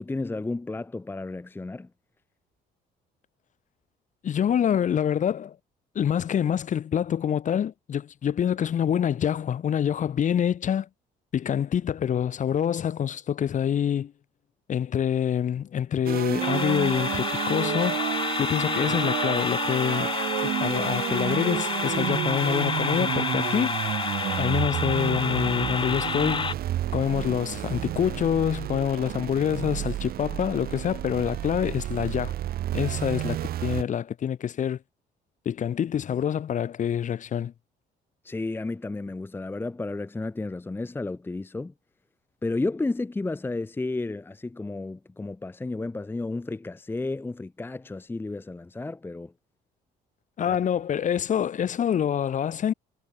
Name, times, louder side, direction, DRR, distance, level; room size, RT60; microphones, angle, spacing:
voice 1, 0.0-1.9 38.2-41.7 42.4-49.3 50.5-50.6, left 2 dB, 10° left, 0.9 m, -32 dB
voice 2, 4.2-5.6 5.9-10.9 11.3-14.1 14.7-18.0 18.4-20.1 20.4-23.7 24.4-26.5 26.9-32.4 32.7-34.8 35.5-37.5 50.4-52.7, left 9 dB, 45° left, 2.5 m, -26 dB
sound 1, 16.1-33.8, right 12 dB, 65° right, 2.2 m, -31 dB
sound 2, 16.4-26.5, left 5 dB, 30° left, 2.4 m, -29 dB
cardioid pair, 110°, 17 cm